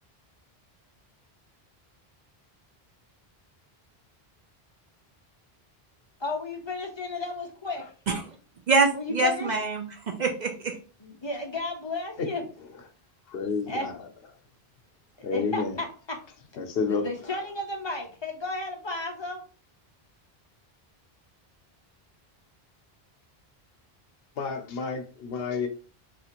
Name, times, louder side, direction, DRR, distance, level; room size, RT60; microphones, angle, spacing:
voice 1, 6.2-8.2 8.9-9.5 11.0-12.4 13.7-13.9 15.2-16.2 16.9-19.4, left 2 dB, 30° left, 2 dB, 0.6 m, -33 dB
voice 2, 8.7-10.8, right 3 dB, 55° right, 3 dB, 0.6 m, -25 dB
voice 3, 13.3-13.9 15.2-15.8 16.6-17.1 24.4-25.7, left 5 dB, 75° left, 6 dB, 0.8 m, -29 dB
4.2 x 2.4 x 2.9 m, 0.39 s
omnidirectional pair, 1.0 m